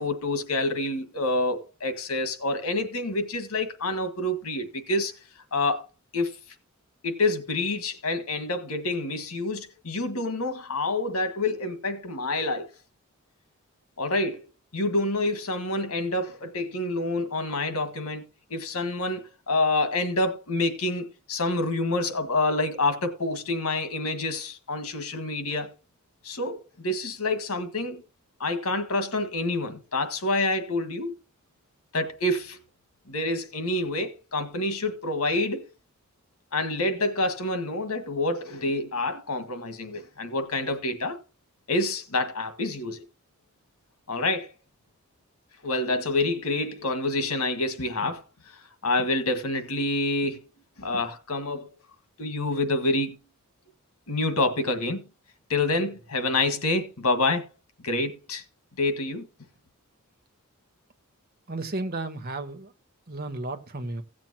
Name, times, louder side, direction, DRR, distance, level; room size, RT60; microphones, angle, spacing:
voice 1, 0.0-5.1 5.5-5.8 6.1-6.3 7.0-12.7 14.0-14.4 14.7-18.2 18.5-25.7 26.2-28.0 28.4-31.1 31.9-32.6 33.1-35.7 36.5-41.2 41.7-43.0 44.1-44.5 45.6-48.6 48.8-50.4 50.8-51.7 52.2-53.2 54.1-55.0 55.5-57.4 57.8-58.4 58.8-59.2, left 2 dB, 80° left, 1.7 m, -27 dB
voice 2, 61.5-62.7 63.1-64.0, right 2 dB, 45° right, 1.1 m, -33 dB
17.0 x 7.5 x 2.8 m
head